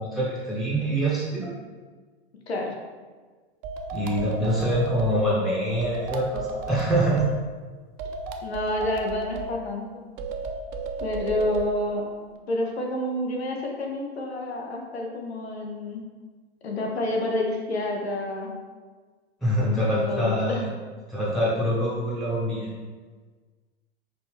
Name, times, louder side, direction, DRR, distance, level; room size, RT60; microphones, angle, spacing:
voice 1, 0.0-1.5 3.9-7.3 19.4-20.7 21.1-22.7, right 1 dB, ahead, -7 dB, 0.7 m, -25 dB
sound 1, 3.6-5.2 5.8-7.3 8.0-9.5 10.2-11.7, right 3 dB, 50° right, 0.5 m, -34 dB
voice 2, 8.4-10.0 11.0-12.0 12.5-16.0 16.6-18.5 19.6-20.6, left 1 dB, 80° left, 1 dB, 0.8 m, -29 dB
4.8 x 2.3 x 3.4 m, 1.4 s
figure-of-eight pair, 95°, 31 cm